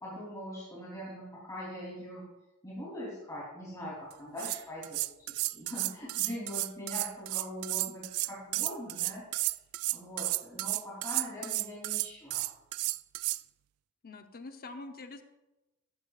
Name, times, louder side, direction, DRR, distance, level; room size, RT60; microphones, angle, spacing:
voice 1, 0.0-2.2 2.6-5.0 5.3-9.4 9.9-12.4, equal, 15° left, -7 dB, 3.4 m, -42 dB
sound 1, 4.1-4.2 4.4-13.4, right 20 dB, 75° right, 0.3 m, -32 dB
voice 2, 5.8-6.2 14.0-15.2, left 3 dB, 45° left, 6 dB, 0.9 m, -46 dB
14.0 x 13.5 x 2.5 m, 0.98 s
head